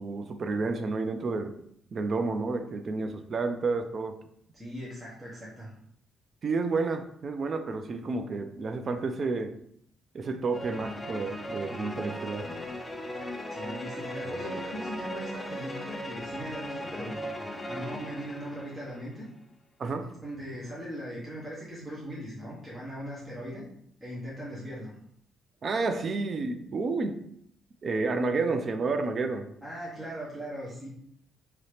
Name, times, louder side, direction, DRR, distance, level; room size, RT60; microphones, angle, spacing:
voice 1, 0.0-1.6 1.9-4.2 6.4-9.5 10.1-12.5 19.8-20.1 25.6-27.2 27.8-29.5, right 3 dB, 45° right, 8 dB, 0.4 m, -30 dB
voice 2, 4.5-5.7 13.5-17.2 17.7-19.3 20.2-23.6 24.0-25.0 29.6-30.9, equal, 15° right, -7 dB, 1.2 m, -39 dB
sound 1, 10.5-19.1, equal, 15° left, 0.5 m, -37 dB
2.9 x 2.7 x 3.3 m, 0.70 s
cardioid pair, 90°, 0 cm